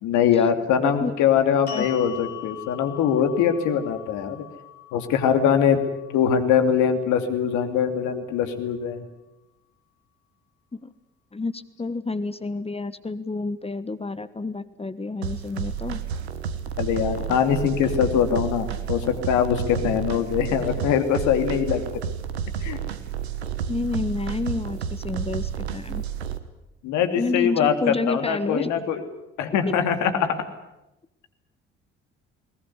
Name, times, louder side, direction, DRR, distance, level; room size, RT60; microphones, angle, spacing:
voice 1, 0.0-4.5 4.9-5.8 6.1-9.1 16.8-22.0 22.6-22.8 26.8-29.0 29.4-30.4, left 8 dB, 65° left, 8 dB, 2.8 m, -22 dB
voice 2, 0.8-1.1 1.7-1.9 10.7-10.9 11.3-16.0 23.7-26.0 27.2-28.7, left 3 dB, 20° left, 14 dB, 1.3 m, -29 dB
sound 1, 1.7-7.9, left 9 dB, 90° left, 2.7 m, -42 dB
sound 2, 15.2-26.4, right 8 dB, 85° right, 1.3 m, -31 dB
21.5 x 20.0 x 9.7 m, 0.93 s
hypercardioid pair, 50°, 32 cm